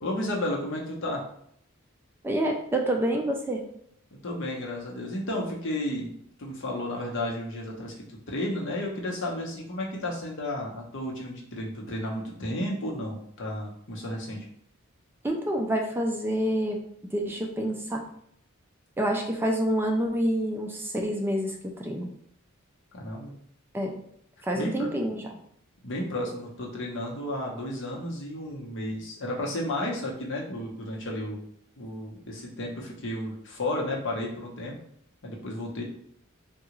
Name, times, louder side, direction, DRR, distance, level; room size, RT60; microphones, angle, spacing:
voice 1, 0.0-1.2 4.2-14.5 22.9-23.3 24.5-24.9 25.8-31.4 31.8-34.7 35.2-35.8, left 1 dB, 60° left, -1 dB, 0.8 m, -33 dB
voice 2, 2.2-3.6 15.2-16.8 17.1-18.0 19.0-22.1 23.7-23.9 24.4-25.3, right 1 dB, 10° right, 1 dB, 0.3 m, -27 dB
3.7 x 2.3 x 3.0 m, 0.68 s
head